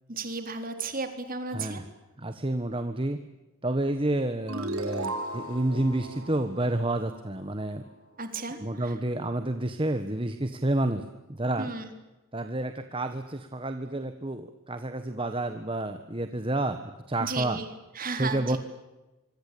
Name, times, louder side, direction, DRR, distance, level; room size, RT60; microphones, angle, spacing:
voice 1, 0.1-1.8 8.2-9.0 11.6-11.9 17.2-17.7 17.9-18.6, right 3 dB, 40° right, 7 dB, 3.8 m, -34 dB
voice 2, 2.2-3.2 3.6-7.8 8.6-11.0 11.3-11.7 12.3-16.8 17.1-17.6 18.2-18.6, right 1 dB, 25° right, 8 dB, 1.3 m, -29 dB
sound 1, 4.5-7.7, right 2 dB, 85° right, 4.1 m, -36 dB
26.0 x 25.0 x 8.6 m, 1.1 s
head